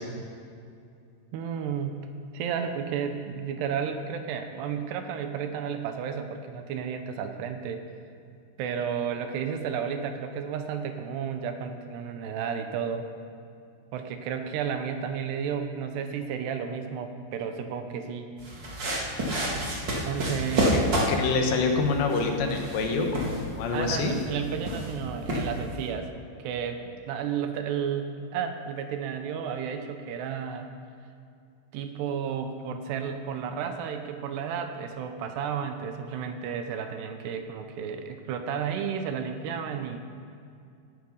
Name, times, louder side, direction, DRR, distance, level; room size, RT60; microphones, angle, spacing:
voice 1, 1.3-2.1 2.3-7.8 8.6-13.1 13.9-18.3 19.9-20.7 23.7-26.1 26.4-30.7 31.7-40.0, right 7 dB, 75° right, 7 dB, 2.9 m, -32 dB
sound 1, 18.4-25.9, right 1 dB, 35° right, 1.9 m, -30 dB
voice 2, 21.1-24.1, left 4 dB, 80° left, 3 dB, 3.6 m, -26 dB
17.0 x 11.5 x 5.4 m, 2.4 s
omnidirectional pair, 5.0 m